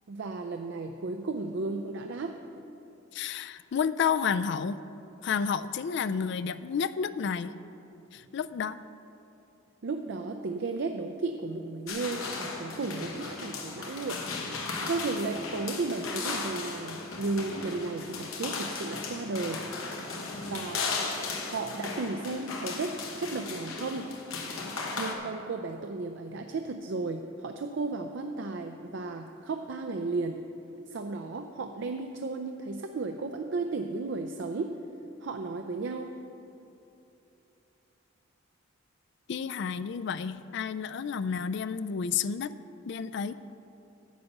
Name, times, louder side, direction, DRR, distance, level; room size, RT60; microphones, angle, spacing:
voice 1, 0.1-2.3 9.8-14.2 14.8-19.6 20.4-20.8 21.4-24.1 25.0-30.4 30.9-34.7 35.2-36.1, right 3 dB, 55° right, 5 dB, 0.4 m, -34 dB
voice 2, 3.1-4.8 5.2-7.5 8.1-8.8 39.3-42.5 42.9-43.3, left 6 dB, 55° left, 14 dB, 0.3 m, -30 dB
sound 1, 11.9-25.1, left 3 dB, 75° left, 1.2 m, -36 dB
10.5 x 7.8 x 5.4 m, 2.8 s
head